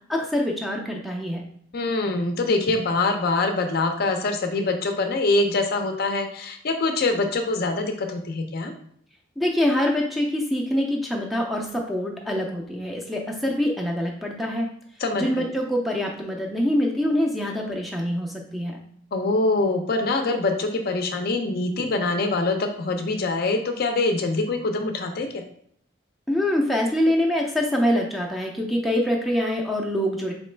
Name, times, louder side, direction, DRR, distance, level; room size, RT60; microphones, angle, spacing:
voice 1, 0.1-1.4 9.4-14.7 15.2-18.8 26.3-30.3, left 1 dB, ahead, 0 dB, 0.4 m, -25 dB
voice 2, 1.7-8.7 15.0-15.5 19.1-25.4, left 3 dB, 50° left, 5 dB, 0.5 m, -24 dB
4.0 x 3.0 x 3.2 m, 0.65 s
head